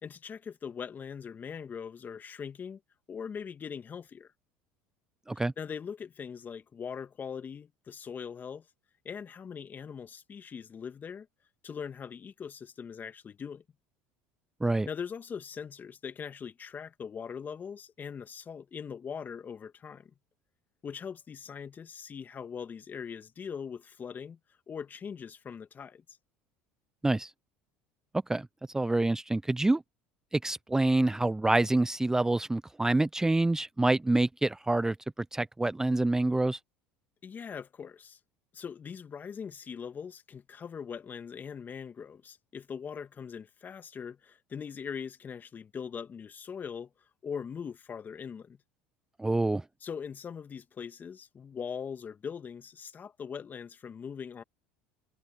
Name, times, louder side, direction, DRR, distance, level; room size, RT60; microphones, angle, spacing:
voice 1, 0.0-2.8 3.1-4.3 5.3-8.7 9.0-11.3 11.6-13.6 14.9-20.1 20.8-24.4 24.7-26.2 37.2-38.2 38.5-46.9 47.2-48.6 49.8-54.4, left 7 dB, 35° left, 2.1 m, -41 dB
voice 2, 28.7-29.8 30.4-35.0 35.3-36.6 49.2-49.6, right 2 dB, 10° right, 0.5 m, -26 dB
hypercardioid pair, 80°, 5 cm